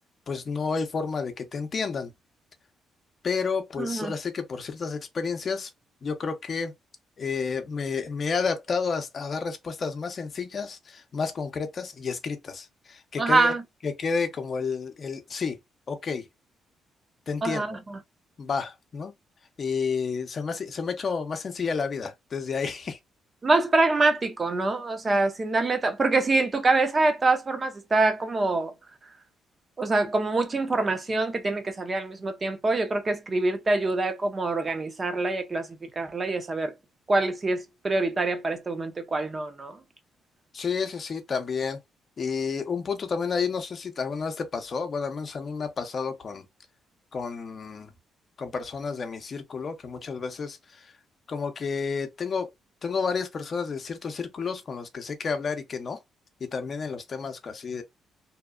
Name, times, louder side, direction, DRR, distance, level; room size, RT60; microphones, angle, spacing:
voice 1, 0.3-2.1 3.2-5.7 6.0-6.7 7.2-13.5 13.8-15.6 15.9-16.3 17.3-17.8 18.4-19.1 19.6-23.0 40.5-41.8 42.2-46.4 47.1-47.9 48.4-50.9 51.3-52.5 52.8-56.0 56.4-57.8, left 5 dB, 45° left, 0.6 m, -30 dB
voice 2, 3.8-4.1 13.2-13.6 17.4-18.0 23.4-28.7 29.8-36.7 37.1-39.8, right 3 dB, 30° right, 0.6 m, -25 dB
2.7 x 2.1 x 2.3 m
cardioid pair, 90°, 0 cm